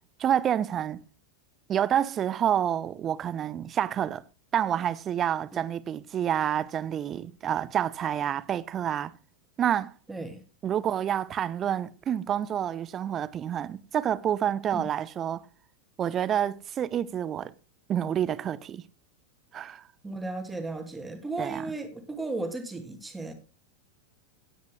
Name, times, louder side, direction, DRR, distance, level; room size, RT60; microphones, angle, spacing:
voice 1, 0.2-1.0 1.7-4.2 4.5-9.1 9.6-9.9 10.6-15.5 16.0-17.5 17.9-18.8 19.5-19.8 21.4-21.7, right 10 dB, 25° right, 0.8 m, -28 dB
voice 2, 10.1-10.4 14.7-14.9 20.0-23.3, right 2 dB, 10° right, 2.9 m, -35 dB
17.5 x 9.5 x 2.3 m
figure-of-eight pair, 90°, 0 cm